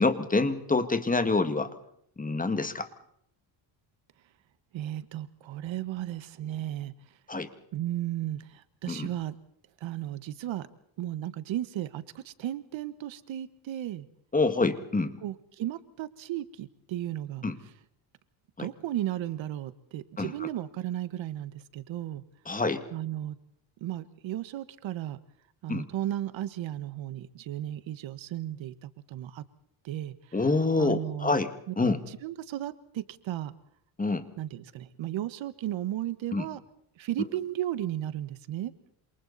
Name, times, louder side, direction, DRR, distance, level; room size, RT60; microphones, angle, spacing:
voice 1, 0.0-1.7 2.2-2.9 7.3-7.5 8.9-9.1 14.3-15.2 17.4-17.6 18.6-18.7 20.2-20.5 22.5-22.8 25.7-25.9 30.3-31.5 31.8-32.0 34.0-34.3 36.3-36.5, left 3 dB, 15° left, 10 dB, 1.9 m, -26 dB
voice 2, 4.7-6.9 7.7-9.3 9.8-10.7 11.0-14.1 15.2-17.4 18.6-22.2 22.9-23.3 23.8-25.2 25.6-29.4 29.8-30.1 30.8-31.3 32.2-33.5 34.4-36.6 37.0-38.7, right 13 dB, 65° right, 14 dB, 1.5 m, -34 dB
28.0 x 27.5 x 4.2 m, 0.69 s
cardioid pair, 125°, 49 cm